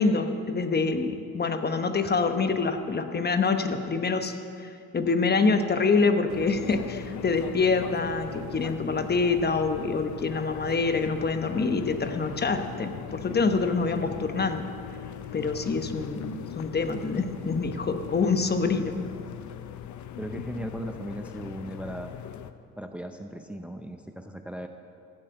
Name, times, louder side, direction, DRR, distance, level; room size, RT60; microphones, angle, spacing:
voice 1, 0.0-14.6 15.3-19.0, left 4 dB, 35° left, 7 dB, 1.0 m, -26 dB
sound 1, 6.3-22.5, left 9 dB, 70° left, 0.7 m, -40 dB
voice 2, 20.2-22.1 22.8-24.7, right 1 dB, 5° right, 6 dB, 0.6 m, -37 dB
14.5 x 7.6 x 7.9 m, 2.5 s
cardioid pair, 90°, 30 cm